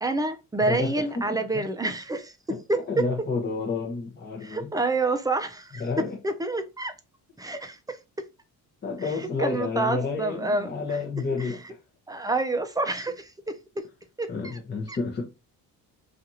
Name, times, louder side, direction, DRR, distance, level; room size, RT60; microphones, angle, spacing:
voice 1, 0.0-2.3 2.7-3.1 4.4-5.8 6.2-6.9 7.4-8.0 9.4-10.7 11.4-11.5 12.1-13.8 14.2-14.3 14.9-15.0, right 2 dB, 10° right, 0.3 m, -28 dB
voice 2, 0.6-1.6 2.5-4.7 5.8-6.2 8.8-11.8 14.3-15.3, left 4 dB, 30° left, 0.7 m, -30 dB
2.8 x 2.4 x 2.5 m
cardioid pair, 100°, 37 cm